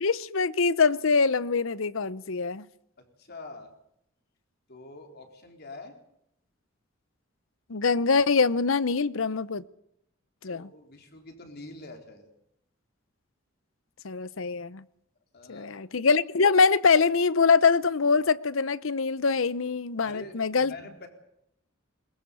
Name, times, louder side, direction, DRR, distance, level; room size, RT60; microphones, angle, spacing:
voice 1, 0.0-2.6 7.7-9.6 10.4-10.7 14.0-14.8 15.5-20.7, left 4 dB, 70° left, 18 dB, 0.8 m, -24 dB
voice 2, 3.0-3.7 4.7-6.0 10.5-12.3 15.3-15.7 20.0-21.1, left 2 dB, 50° left, 4 dB, 3.9 m, -45 dB
21.5 x 20.5 x 7.0 m, 0.77 s
head